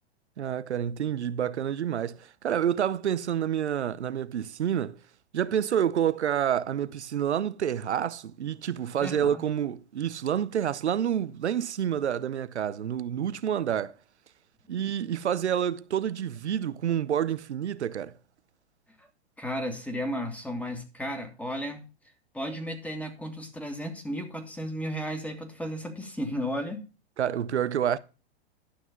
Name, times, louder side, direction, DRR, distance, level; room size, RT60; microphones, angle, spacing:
voice 1, 0.4-5.0 5.3-13.9 14.7-18.1 27.2-28.0, right 9 dB, 85° right, 0.7 m, -28 dB
voice 2, 9.0-9.4 19.0-19.1 19.4-21.8 22.3-26.9, equal, 5° left, 2.3 m, -34 dB
11.5 x 6.1 x 5.2 m
hypercardioid pair, 105°, 33 cm